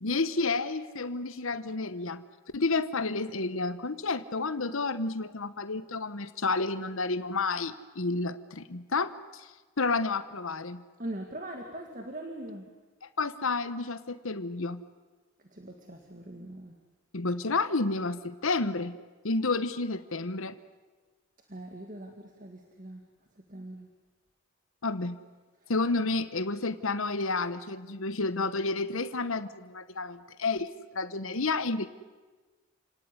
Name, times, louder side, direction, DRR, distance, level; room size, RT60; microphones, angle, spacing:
voice 1, 0.0-2.2 2.5-9.5 9.8-10.8 13.0-14.8 17.1-19.0 19.2-20.5 24.8-25.2 25.7-31.9, left 3 dB, 70° left, 13 dB, 1.1 m, -30 dB
voice 2, 11.0-12.7 15.5-16.8 21.5-23.0 23.5-23.9 25.6-25.7, right 1 dB, 40° right, 3 dB, 2.1 m, -41 dB
29.0 x 18.5 x 9.8 m, 1.3 s
head